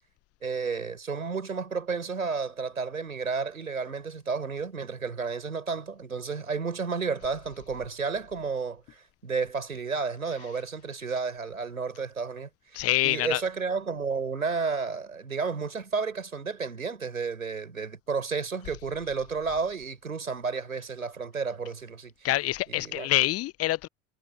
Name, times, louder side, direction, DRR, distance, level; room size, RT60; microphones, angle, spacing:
voice 1, 0.4-12.5 13.0-22.3 22.7-23.1, right 5 dB, 90° right, 5.0 m, -32 dB
voice 2, 12.7-13.4 22.2-23.9, left 16 dB, 35° left, 0.7 m, -26 dB
figure-of-eight pair, 70°, 40 cm